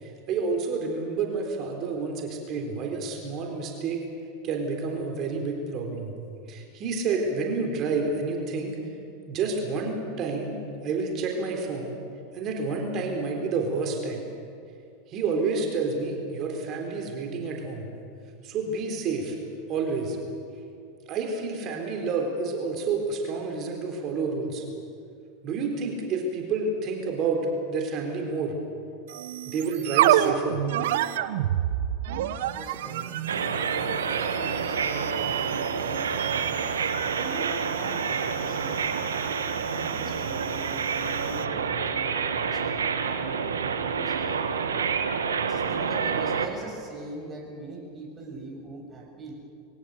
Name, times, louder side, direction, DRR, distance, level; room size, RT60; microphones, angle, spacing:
voice 1, 0.0-4.0 4.4-6.1 6.5-8.8 9.3-10.5 10.8-11.9 12.3-14.2 15.1-17.9 18.4-19.4 19.7-20.2 21.1-24.6 25.4-28.5 29.5-30.6, right 4 dB, 45° right, 2 dB, 3.8 m, -29 dB
sound 1, 29.1-41.6, right 12 dB, 65° right, 0.9 m, -30 dB
voice 2, 32.5-36.7 37.2-39.1 39.8-42.6 43.0-44.4 45.5-49.3, right 2 dB, 25° right, 0 dB, 6.9 m, -41 dB
sound 2, 33.3-46.5, right 6 dB, 80° right, 1.4 m, -28 dB
22.5 x 17.5 x 8.1 m, 2.4 s
hypercardioid pair, 90°, 0 cm